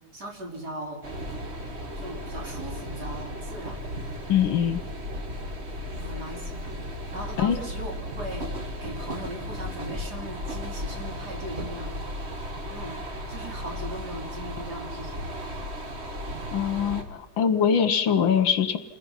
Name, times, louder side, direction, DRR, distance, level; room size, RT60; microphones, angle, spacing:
voice 1, 0.1-1.1 2.0-3.8 6.0-13.0 13.3-15.3, right 1 dB, 45° right, 1 dB, 4.0 m, -39 dB
sound 1, 1.0-17.0, equal, 30° right, 2.0 m, -35 dB
voice 2, 4.3-4.8 7.4-7.6 16.5-18.8, left 8 dB, 70° left, 11 dB, 1.7 m, -23 dB
28.0 x 21.0 x 5.7 m, 1.0 s
omnidirectional pair, 2.4 m